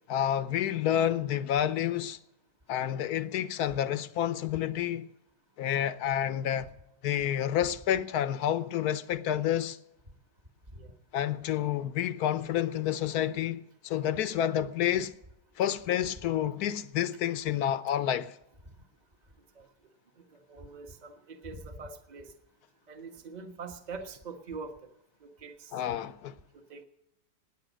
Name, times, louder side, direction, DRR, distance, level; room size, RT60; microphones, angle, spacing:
voice 1, 0.1-2.2 2.7-5.1 5.6-6.7 7.0-9.8 11.1-15.1 15.6-18.4 25.7-26.3, left 10 dB, 65° left, 1.2 m, -29 dB
voice 2, 20.5-22.3 22.9-24.7 25.2-25.8 26.5-26.8, right 4 dB, 25° right, 1.3 m, -43 dB
19.0 x 8.9 x 6.3 m
omnidirectional pair, 1.9 m